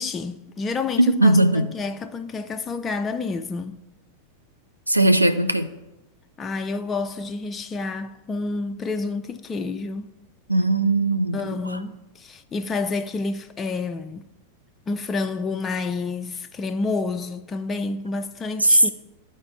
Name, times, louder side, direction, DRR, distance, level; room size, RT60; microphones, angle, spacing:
voice 1, 0.0-3.8 6.4-10.1 11.3-14.2 14.9-18.9, left 3 dB, 20° left, 0.3 m, -29 dB
voice 2, 1.0-1.7 4.9-5.7 10.5-11.8 18.6-18.9, right 1 dB, 85° right, 0.5 m, -19 dB
12.0 x 4.2 x 2.4 m
figure-of-eight pair, 90°, 0 cm